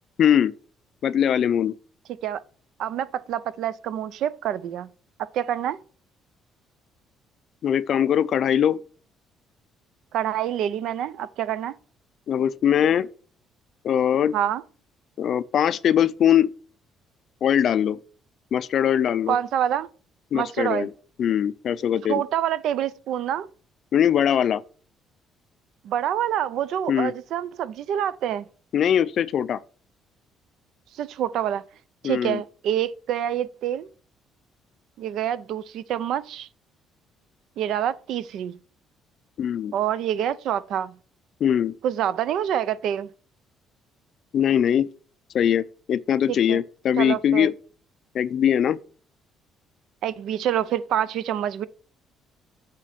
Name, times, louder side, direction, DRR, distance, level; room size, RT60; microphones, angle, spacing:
voice 1, 0.2-0.5 1.0-1.7 7.6-8.8 12.3-13.1 13.8-14.3 15.2-16.5 17.4-18.0 18.5-19.4 20.3-20.9 21.2-22.2 23.9-24.6 26.9-27.1 28.7-29.6 32.0-32.4 39.4-39.7 41.4-41.7 44.3-44.9 45.3-47.5 48.1-48.8, left 9 dB, 45° left, 0.4 m, -21 dB
voice 2, 2.8-4.9 5.3-5.8 10.1-11.7 14.3-14.6 19.3-19.9 20.3-20.9 22.1-23.5 25.8-28.5 30.9-31.6 32.0-33.9 35.0-36.5 37.6-38.5 39.7-40.9 41.8-43.1 46.3-46.6 47.0-47.5 50.0-51.7, right 10 dB, 60° right, 0.5 m, -26 dB
7.5 x 4.4 x 5.7 m
cardioid pair, 170°, 0 cm